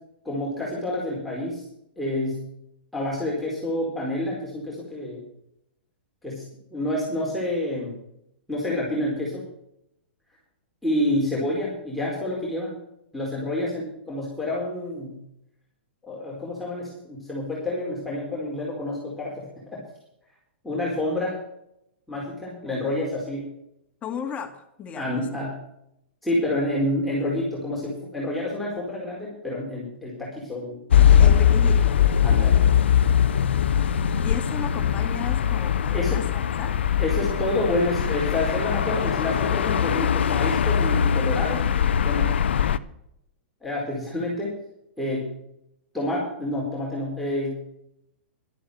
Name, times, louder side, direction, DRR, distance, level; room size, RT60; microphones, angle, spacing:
voice 1, 0.2-1.6 2.0-2.4 2.9-5.2 6.2-6.4 6.7-7.9 8.5-9.4 10.8-12.7 13.1-15.2 16.0-19.3 19.7-19.8 20.6-21.4 22.1-23.4 24.9-25.5 26.2-31.3 32.2-32.6 35.9-36.2 37.0-41.7 42.0-42.3 43.6-44.5 45.0-45.3 45.9-47.6, left 1 dB, ahead, -7 dB, 4.5 m, -28 dB
voice 2, 24.0-25.5 31.2-32.0 34.2-36.8, left 7 dB, 20° left, 5 dB, 2.0 m, -35 dB
sound 1, 30.9-42.8, left 8 dB, 75° left, 0.7 m, -21 dB
12.0 x 10.0 x 6.5 m, 0.78 s
hypercardioid pair, 120°, 6 cm